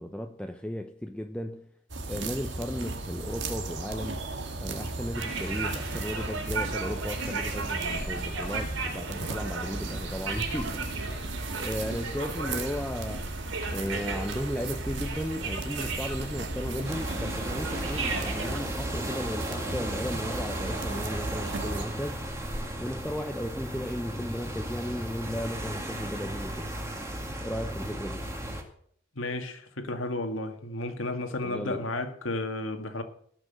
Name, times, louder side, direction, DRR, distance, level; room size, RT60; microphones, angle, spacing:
voice 1, 0.0-1.7 2.1-4.3 4.6-10.9 11.5-13.3 13.7-22.3 22.8-26.7 27.4-28.2 31.4-31.9, equal, 5° left, 0.6 m, -35 dB
sound 1, 1.9-21.8, right 2 dB, 65° right, 1.9 m, -35 dB
sound 2, 5.1-18.6, right 4 dB, 85° right, 3.9 m, -36 dB
sound 3, 16.8-28.6, right 1 dB, 15° right, 2.0 m, -36 dB
voice 2, 29.2-33.0, left 2 dB, 85° left, 2.0 m, -33 dB
17.5 x 6.2 x 7.9 m
head